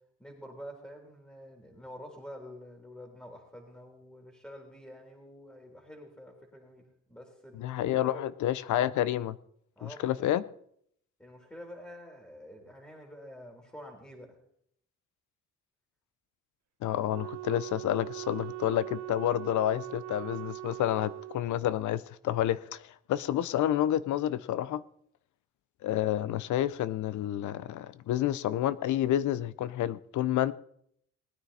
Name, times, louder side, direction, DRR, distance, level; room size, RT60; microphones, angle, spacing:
voice 1, 0.2-8.2 9.8-10.3 11.2-14.4, equal, 5° left, 3.3 m, -48 dB
voice 2, 7.5-9.4 9.8-10.4 16.8-24.8 25.8-30.5, left 12 dB, 75° left, 0.7 m, -29 dB
Wind instrument woodwind instrument, 17.1-21.4, right 18 dB, 65° right, 0.5 m, -41 dB
20.0 x 9.6 x 4.2 m
cardioid pair, 90°, 30 cm